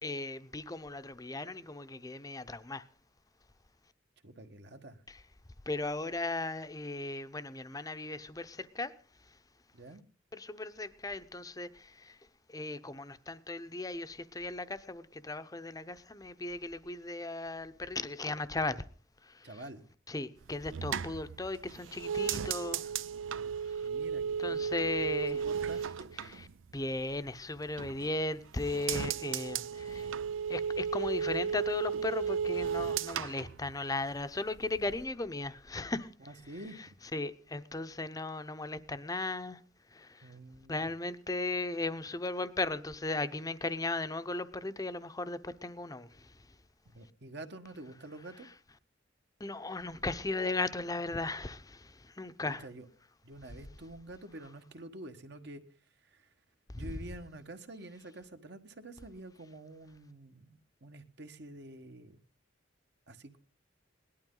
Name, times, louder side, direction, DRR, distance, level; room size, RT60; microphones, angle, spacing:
voice 1, 0.0-2.8 5.1-5.2 5.7-8.9 10.3-12.2 12.5-18.8 19.2-19.5 20.1-22.9 23.7-23.9 24.4-25.4 26.2-26.5 26.7-30.1 30.5-36.1 37.1-39.6 39.9-40.3 40.7-46.4 49.4-52.7 56.7-56.9, left 2 dB, 20° left, 0.7 m, -37 dB
voice 2, 4.2-5.0 9.7-10.0 19.4-19.9 23.8-24.7 25.1-25.8 36.3-36.8 40.2-40.9 46.9-48.5 52.4-52.8 53.2-55.6 56.0-56.3 56.8-62.2 63.1-63.4, right 2 dB, 60° right, 1.4 m, -48 dB
sound 1, 20.4-27.2 27.6-28.3 28.6-34.3 34.5-35.0, right 7 dB, 85° right, 0.5 m, -35 dB
18.0 x 12.0 x 3.9 m
head